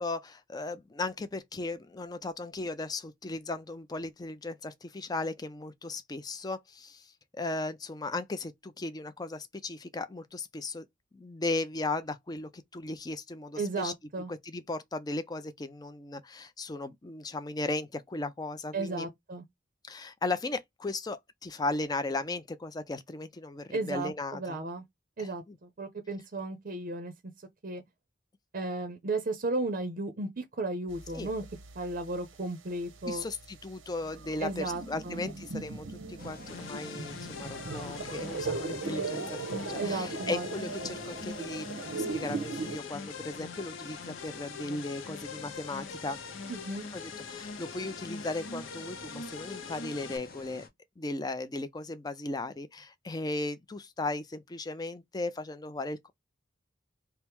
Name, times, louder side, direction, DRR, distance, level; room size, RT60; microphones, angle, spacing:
voice 1, 0.0-10.9 11.1-13.9 14.3-19.1 19.9-24.6 25.2-25.6 31.1-31.3 33.1-46.2 46.9-50.6 51.0-56.1, left 2 dB, 20° left, 0.4 m, -36 dB
voice 2, 13.6-14.3 18.7-19.4 23.7-24.8 25.2-27.1 27.6-27.8 28.5-31.4 31.8-33.2 34.4-35.2 39.8-40.5 46.5-46.8, right 2 dB, 45° right, 0.6 m, -34 dB
sound 1, 30.9-32.4 32.7-42.8, right 4 dB, 85° right, 0.8 m, -39 dB
sound 2, 36.2-50.7, left 3 dB, 50° left, 0.9 m, -49 dB
sound 3, 36.5-50.2, left 5 dB, 85° left, 0.6 m, -43 dB
3.5 x 2.1 x 4.3 m
head